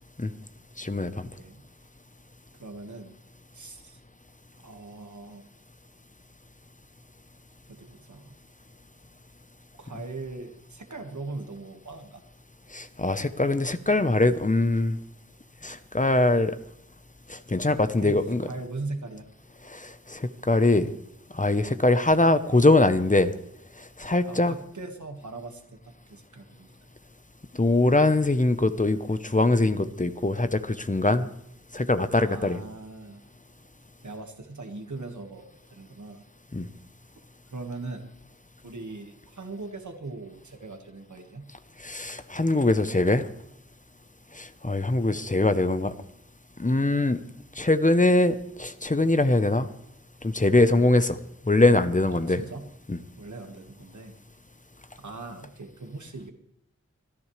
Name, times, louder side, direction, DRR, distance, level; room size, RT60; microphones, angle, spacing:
voice 1, 0.8-1.3 12.7-15.0 15.6-16.5 17.3-18.5 19.6-20.9 21.3-23.3 24.0-24.5 27.5-31.3 31.7-32.6 36.5-36.7 41.8-43.2 44.3-45.9 46.6-47.2 47.6-49.7 50.2-51.2 51.5-52.4 52.9-53.0, left 2 dB, 25° left, 11 dB, 0.9 m, -22 dB
voice 2, 1.3-1.7 2.5-3.1 3.5-4.0 4.6-5.5 7.7-8.3 9.7-12.2 18.0-19.3 24.3-26.8 32.1-33.2 34.0-36.2 37.5-38.1 38.6-41.5 52.1-52.7 53.2-54.2 55.0-56.3, right 3 dB, 80° right, 5 dB, 1.8 m, -40 dB
26.5 x 11.0 x 3.3 m, 0.75 s
wide cardioid pair, 45°, 29 cm